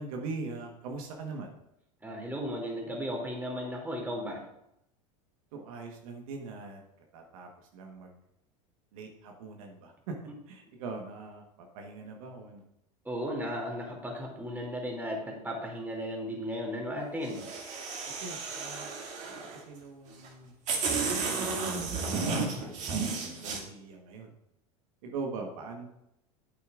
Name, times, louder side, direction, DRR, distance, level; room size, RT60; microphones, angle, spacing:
voice 1, 0.0-1.5 5.5-6.8 7.1-8.2 8.9-10.1 10.5-12.6 18.2-18.9 19.2-20.5 21.1-23.1 23.4-24.3 25.0-25.9, right 4 dB, 65° right, 2 dB, 1.3 m, -42 dB
voice 2, 2.0-4.4 13.0-17.4, equal, 10° right, -1 dB, 2.6 m, -35 dB
sound 1, 17.2-19.6 20.2-20.3 20.7-23.6, right 4 dB, 40° right, 2.2 m, -33 dB
8.5 x 8.4 x 2.5 m, 0.80 s
hypercardioid pair, 95°, 19 cm